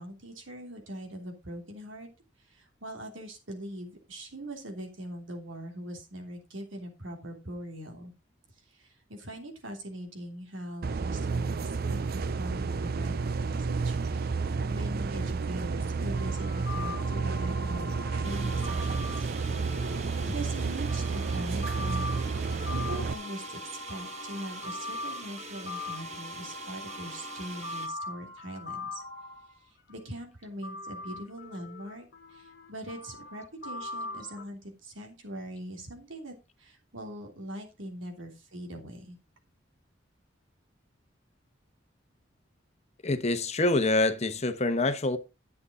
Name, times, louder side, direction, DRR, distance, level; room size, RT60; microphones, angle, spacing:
voice 1, 0.0-2.1 2.5-8.1 8.7-19.2 19.9-29.0 29.9-39.2, right 1 dB, 90° right, 3.2 m, -42 dB
sound 1, 10.8-23.1, right 4 dB, 55° right, 0.5 m, -31 dB
sound 2, 16.1-29.9 30.6-34.5, left 2 dB, 55° left, 1.5 m, -41 dB
sound 3, 18.2-27.9, right 4 dB, 35° right, 1.8 m, -45 dB
voice 2, 43.0-45.2, left 2 dB, 35° left, 1.1 m, -26 dB
11.0 x 8.3 x 3.8 m
head